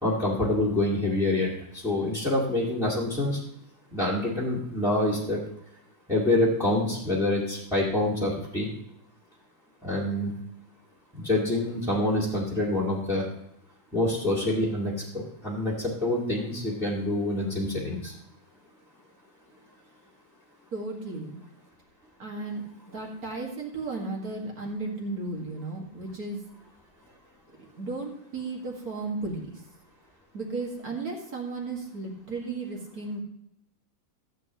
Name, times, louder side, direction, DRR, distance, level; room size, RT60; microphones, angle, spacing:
voice 1, 0.0-3.4 3.9-5.4 6.1-8.7 9.8-10.3 11.2-13.2 13.9-18.1, left 1 dB, ahead, -7 dB, 1.8 m, -26 dB
voice 2, 20.7-21.4 22.2-26.4 27.8-29.5 30.3-33.2, right 3 dB, 50° right, -1 dB, 2.3 m, -34 dB
14.0 x 8.2 x 3.0 m, 0.76 s
omnidirectional pair, 2.2 m